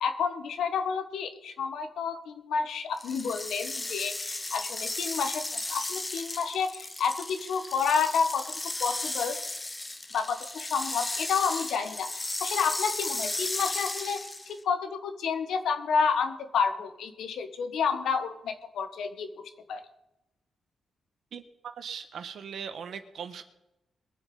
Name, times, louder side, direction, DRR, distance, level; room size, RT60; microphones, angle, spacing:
voice 1, 0.0-8.5 8.8-9.4 10.1-19.3 19.7-19.8, left 6 dB, 90° left, 8 dB, 1.5 m, -30 dB
sound 1, 3.0-14.6, left 2 dB, 15° left, 0.9 m, -35 dB
voice 2, 21.3-23.4, right 7 dB, 65° right, 9 dB, 1.3 m, -40 dB
22.0 x 7.5 x 5.5 m, 0.91 s
wide cardioid pair, 165°, 0 cm